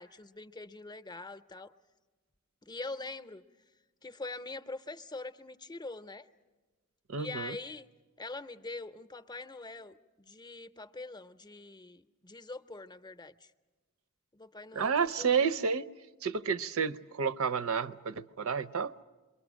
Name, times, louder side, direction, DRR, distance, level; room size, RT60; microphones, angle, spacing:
voice 1, 0.0-1.7 2.7-3.4 4.0-6.3 7.2-7.9 8.2-13.5 14.3-15.5, left 3 dB, 20° left, 0.7 m, -43 dB
voice 2, 7.1-7.6 14.7-15.8 16.2-18.9, right 6 dB, 70° right, 0.7 m, -30 dB
28.0 x 23.5 x 6.3 m
head